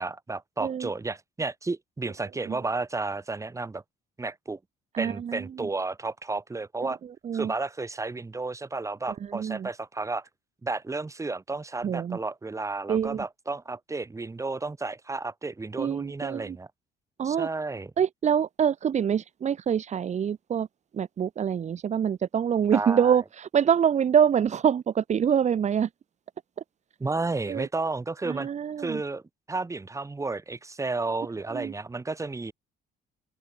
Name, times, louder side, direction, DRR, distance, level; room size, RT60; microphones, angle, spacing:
voice 1, 0.0-3.8 4.2-4.6 5.0-7.0 7.3-10.3 10.6-16.7 17.2-17.9 22.7-23.2 27.0-28.5 28.8-29.2 29.5-32.5, right 3 dB, 20° right, 7.7 m, -32 dB
voice 2, 0.6-0.9 2.4-2.6 4.9-5.7 6.8-7.5 9.1-9.7 11.8-12.2 12.9-13.3 15.8-16.6 17.2-17.5 18.0-20.7 20.9-25.9 27.5-27.7 28.2-29.0 31.5-31.7, right 8 dB, 45° right, 2.2 m, -26 dB
open air
cardioid pair, 110°, 17 cm